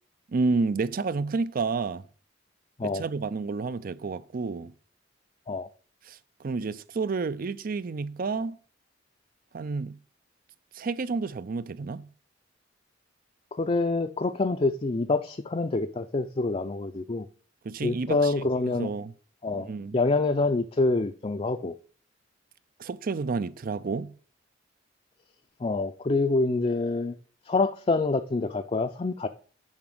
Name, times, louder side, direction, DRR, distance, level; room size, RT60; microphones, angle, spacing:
voice 1, 0.3-2.1 2.8-4.7 6.1-8.6 9.5-10.0 10.7-12.1 17.6-18.5 18.8-19.1 19.5-20.0 22.8-24.1, right 4 dB, 50° right, 0.4 m, -30 dB
voice 2, 13.6-17.3 17.8-18.9 19.4-21.7 25.6-27.1 27.5-29.3, left 3 dB, 30° left, 0.5 m, -26 dB
7.3 x 5.9 x 7.7 m
head